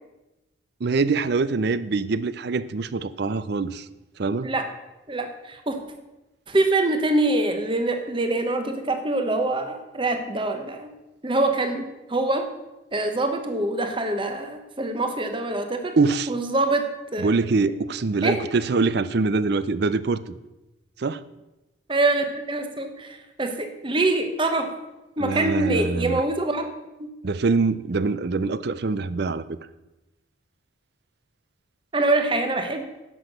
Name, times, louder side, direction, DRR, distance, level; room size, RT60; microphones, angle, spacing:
voice 1, 0.8-3.9 4.2-4.5 16.0-16.3 17.2-20.3 21.0-21.2 25.2-26.2 27.2-29.4, right 4 dB, 55° right, 16 dB, 0.5 m, -24 dB
voice 2, 5.1-5.8 6.5-10.9 11.2-12.5 12.9-16.0 16.3-16.9 17.1-17.4 18.2-18.4 21.9-24.7 25.2-26.7 27.0-27.1 31.9-32.9, right 2 dB, 25° right, 6 dB, 1.0 m, -24 dB
11.0 x 6.1 x 6.6 m, 1.0 s
head